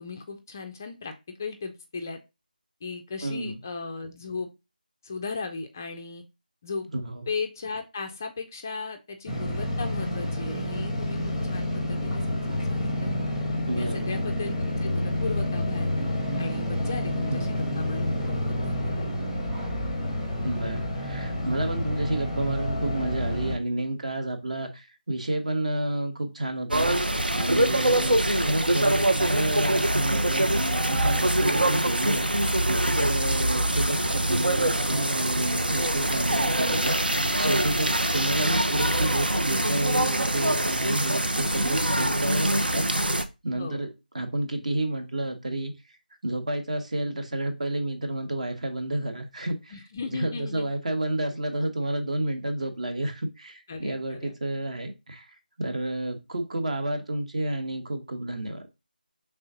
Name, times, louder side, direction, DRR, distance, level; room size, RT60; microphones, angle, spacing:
voice 1, 0.0-2.2 2.8-4.5 5.0-6.2 6.6-6.9 7.3-13.1 13.8-15.9 16.4-19.1 27.5-28.1 43.5-43.9 49.7-50.7 53.7-54.3, left 4 dB, 20° left, 5 dB, 0.3 m, -37 dB
voice 2, 3.2-3.6 6.9-7.3 13.7-14.1 17.3-17.5 20.4-32.4 32.7-43.2 43.4-43.9 44.1-45.7 46.2-49.7 50.1-58.7, right 1 dB, 45° right, 7 dB, 1.0 m, -30 dB
sound 1, 9.3-23.6, left 1 dB, ahead, 0.7 m, -29 dB
sound 2, 26.7-43.2, right 1 dB, 80° right, 0.7 m, -24 dB
5.4 x 3.4 x 2.7 m, 0.26 s
figure-of-eight pair, 160°, 5 cm